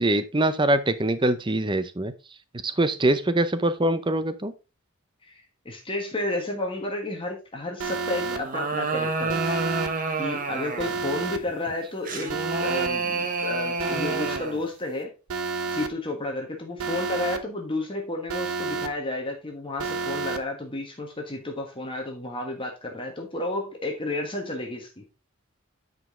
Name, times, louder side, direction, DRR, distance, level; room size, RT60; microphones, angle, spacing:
voice 1, 0.0-2.1 2.6-4.5, right 1 dB, 20° right, 12 dB, 0.6 m, -23 dB
voice 2, 5.3-9.4 10.2-15.1 15.7-25.0, left 2 dB, 25° left, 1 dB, 1.4 m, -32 dB
Alarm, 7.8-8.4 9.3-9.9 10.8-11.4 12.3-12.9 13.8-14.4 15.3-15.9 16.8-17.4 18.3-18.9 19.8-20.4, right 4 dB, 80° right, 0.9 m, -30 dB
sound 1, 8.2-11.0 12.1-14.7, right 3 dB, 40° right, 1.1 m, -29 dB
9.3 x 5.2 x 3.6 m, 0.30 s
head